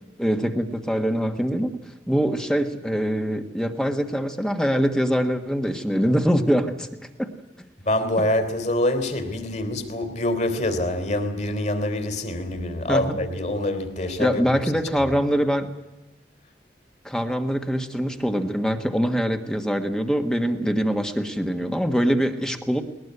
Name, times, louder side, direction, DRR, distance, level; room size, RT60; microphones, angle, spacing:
voice 1, 0.2-6.9 7.2-7.3 12.9-13.2 14.2-15.7 17.0-22.8, equal, 5° left, 1.5 m, -23 dB
voice 2, 7.8-14.4 15.0-15.1, left 1 dB, 40° left, 3.3 m, -25 dB
21.0 x 19.5 x 9.6 m
head